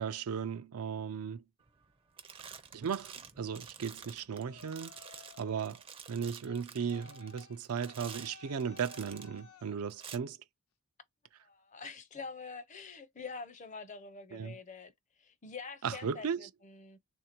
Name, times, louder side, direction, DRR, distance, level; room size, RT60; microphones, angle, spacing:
voice 1, 0.0-1.4 2.4-4.9 5.4-5.8 6.1-10.4 14.3-14.5 15.8-16.4, right 7 dB, 80° right, 0.4 m, -36 dB
sound 1, 1.7-1.9 2.2-9.4 9.9-10.2, right 7 dB, 25° right, 0.5 m, -50 dB
Yell, 4.4-5.7 6.4-9.8, left 6 dB, 75° left, 0.7 m, -56 dB
voice 2, 11.4-17.0, left 4 dB, 35° left, 0.5 m, -46 dB
3.5 x 2.5 x 4.3 m
head